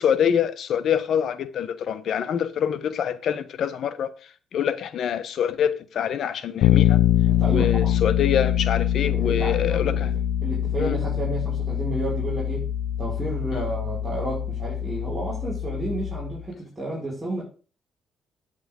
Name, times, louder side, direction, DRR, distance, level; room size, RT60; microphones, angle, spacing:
voice 1, 0.0-4.1 4.5-7.0 7.5-10.1 10.8-11.0 13.5-13.6, left 8 dB, 65° left, 1.0 m, -25 dB
Bass guitar, 6.6-16.4, left 11 dB, 90° left, 0.5 m, -24 dB
voice 2, 7.3-7.9 9.0-10.0 10.4-12.7 13.0-17.4, right 2 dB, 10° right, 5.4 m, -31 dB
9.3 x 7.9 x 3.7 m
cardioid pair, 90°, 0 cm